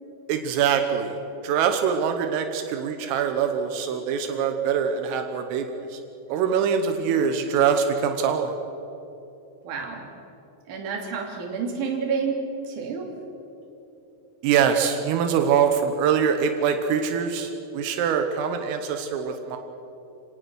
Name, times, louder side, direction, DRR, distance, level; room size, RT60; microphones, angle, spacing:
voice 1, 0.3-1.2 1.4-6.0 6.3-8.5 14.4-19.6, right 7 dB, 80° right, 6 dB, 3.7 m, -24 dB
voice 2, 9.6-10.0 10.7-13.1, right 5 dB, 45° right, 1 dB, 3.6 m, -29 dB
28.0 x 18.5 x 6.3 m, 3.0 s
omnidirectional pair, 5.9 m